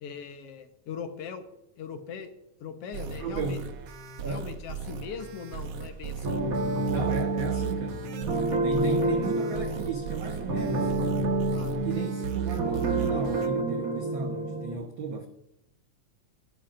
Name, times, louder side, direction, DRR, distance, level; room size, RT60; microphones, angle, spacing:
voice 1, 0.0-1.4 1.8-2.3 2.6-3.6 4.2-6.4 11.5-11.8, left 6 dB, 65° left, 7 dB, 1.9 m, -40 dB
sound 1, 2.9-13.5, right 8 dB, 80° right, 1.0 m, -37 dB
voice 2, 3.1-3.6 4.2-4.5 6.9-8.0 8.6-10.9 11.8-15.3, right 4 dB, 60° right, 4 dB, 1.3 m, -34 dB
sound 2, 6.2-14.7, right 2 dB, 40° right, 1.3 m, -28 dB
18.0 x 11.5 x 2.5 m, 0.86 s
omnidirectional pair, 3.3 m